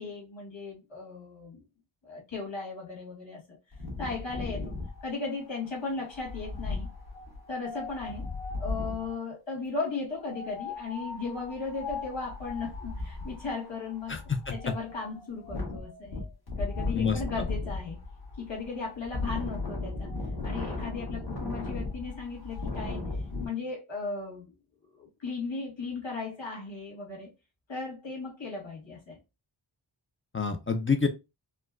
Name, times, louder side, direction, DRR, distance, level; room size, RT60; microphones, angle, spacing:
voice 1, 0.0-1.6 2.0-3.4 4.0-4.8 5.0-6.9 7.5-8.3 8.5-14.2 14.5-16.2 16.6-18.0 18.4-20.1 20.4-23.1 23.4-24.5 24.9-27.3 27.7-29.2, left 4 dB, 90° left, 1.9 m, -36 dB
Wind, 3.7-9.1 10.2-23.5, left 3 dB, 55° left, 1.6 m, -36 dB
voice 2, 14.1-14.5 16.9-17.5 30.3-31.1, left 5 dB, 30° left, 0.5 m, -28 dB
4.3 x 2.2 x 2.4 m
wide cardioid pair, 85°, 44 cm